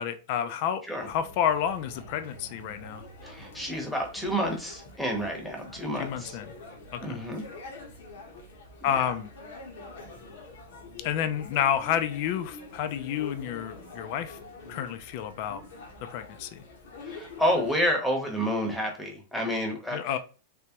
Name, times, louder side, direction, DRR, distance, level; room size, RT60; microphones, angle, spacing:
voice 1, 0.0-0.8 1.1-3.0 6.0-6.5 6.9-7.2 8.8-9.3 11.0-14.4 14.7-15.6 16.1-16.6 19.9-20.2, left 9 dB, 45° left, 10 dB, 0.4 m, -29 dB
sound 1, 1.0-17.9, left 2 dB, 70° left, 1.1 m, -45 dB
voice 2, 3.2-6.4 7.0-7.4 8.8-9.0 17.0-20.2, equal, 5° left, 1 dB, 0.8 m, -29 dB
3.4 x 2.9 x 2.9 m, 0.35 s
supercardioid pair, 160°, 0 cm